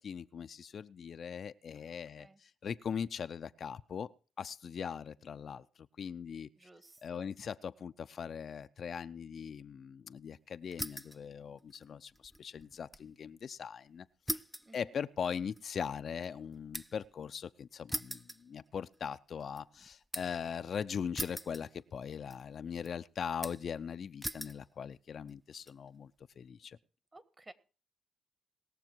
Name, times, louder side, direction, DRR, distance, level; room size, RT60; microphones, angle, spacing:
voice 1, 0.0-4.1 4.4-5.6 6.0-6.5 7.0-14.4 14.7-26.1 26.4-26.8, left 7 dB, 55° left, 11 dB, 0.5 m, -40 dB
voice 2, 1.7-2.4 6.6-7.3 14.6-14.9 26.6-26.7 27.1-27.5, right 2 dB, 25° right, 14 dB, 1.4 m, -57 dB
sound 1, 10.7-11.2 11.6-13.1 13.4-13.5 14.3-17.1 17.9-19.0 19.4-20.4 21.1-22.0 22.3-22.9 23.4-23.8 24.2-24.6 25.3-25.7, equal, ahead, 0.5 m, -42 dB
20.0 x 6.9 x 4.5 m, 0.37 s
cardioid pair, 80°, 0 cm